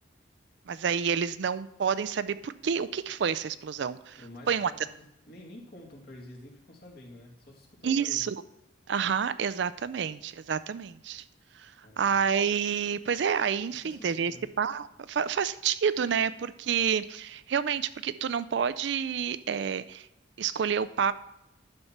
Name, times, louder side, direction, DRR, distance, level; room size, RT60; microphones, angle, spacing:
voice 1, 0.7-4.2 4.5-4.7 7.8-8.4 8.9-11.2 11.6-11.7 12.0-14.3 14.6-20.1 20.4-21.1, right 7 dB, 65° right, 15 dB, 0.4 m, -29 dB
voice 2, 4.2-8.3 11.8-12.2 13.7-14.5, left 1 dB, 50° left, -1 dB, 1.9 m, -49 dB
11.0 x 4.3 x 5.8 m, 0.85 s
head